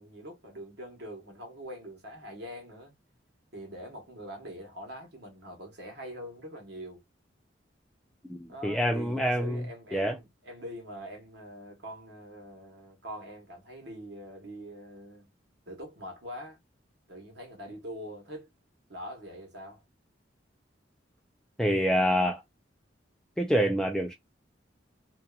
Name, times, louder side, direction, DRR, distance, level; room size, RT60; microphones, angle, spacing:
voice 1, 0.0-2.9 3.5-7.0 8.5-15.3 15.7-16.6 17.1-18.5 18.9-19.8, equal, 65° right, 1.2 m, -43 dB
voice 2, 8.3-9.6 9.9-10.2 21.6-22.4 23.4-24.1, equal, 5° left, 0.3 m, -26 dB
2.7 x 2.4 x 2.3 m
head